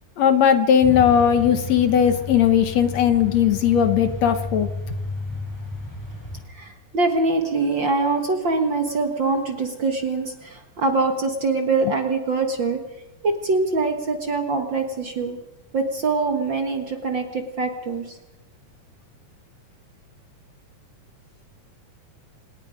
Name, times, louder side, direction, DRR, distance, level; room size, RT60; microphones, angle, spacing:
voice 1, 0.2-4.7, left 8 dB, 65° left, 9 dB, 2.1 m, -18 dB
Truck, 0.8-6.4, left 2 dB, 5° left, 6.1 m, -32 dB
voice 2, 6.5-12.8 13.2-15.4 15.7-18.2, right 3 dB, 45° right, 5 dB, 1.8 m, -24 dB
26.5 x 20.0 x 5.2 m, 0.98 s
omnidirectional pair, 3.6 m